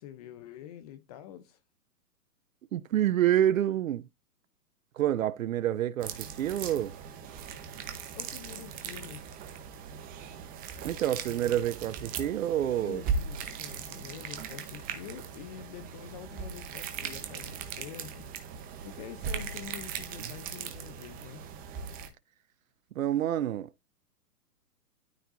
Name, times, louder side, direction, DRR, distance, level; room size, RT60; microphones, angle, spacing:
voice 1, 0.0-1.6 8.1-9.4 12.8-18.3 18.8-21.4, left 10 dB, 25° left, 0.6 m, -46 dB
voice 2, 2.7-4.1 5.0-6.9 10.8-13.0 20.2-20.3 23.0-23.7, right 11 dB, 55° right, 0.7 m, -28 dB
sound 1, 6.0-22.1, right 6 dB, 20° right, 0.9 m, -39 dB
13.0 x 4.5 x 2.6 m
hypercardioid pair, 135°, 48 cm